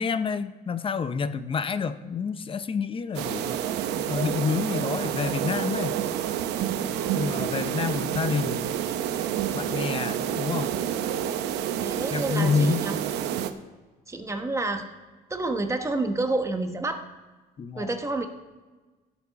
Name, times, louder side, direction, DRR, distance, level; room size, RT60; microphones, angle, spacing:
voice 1, 0.0-3.6 3.9-6.0 7.1-8.7 9.5-10.7 12.1-12.8 17.6-17.9, left 5 dB, 30° left, 12 dB, 0.6 m, -28 dB
sound 1, 3.1-13.5, right 10 dB, 85° right, 0.8 m, -29 dB
voice 2, 6.9-7.3 7.8-8.0 11.8-13.0 14.1-14.9 15.3-17.0 17.8-18.3, right 2 dB, 15° right, 6 dB, 1.1 m, -29 dB
16.0 x 7.2 x 4.1 m, 1.3 s
cardioid pair, 110°, 17 cm